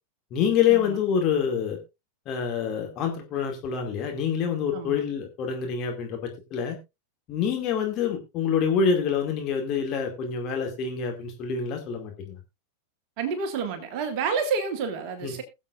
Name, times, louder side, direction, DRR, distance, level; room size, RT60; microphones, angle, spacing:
voice 1, 0.3-1.8 2.3-6.8 7.3-12.4 15.2-15.4, left 7 dB, 35° left, 2 dB, 2.4 m, -26 dB
voice 2, 4.7-5.0 13.2-15.4, right 5 dB, 45° right, 7 dB, 1.9 m, -29 dB
20.5 x 7.3 x 2.5 m, 0.24 s
figure-of-eight pair, 90°, 0 cm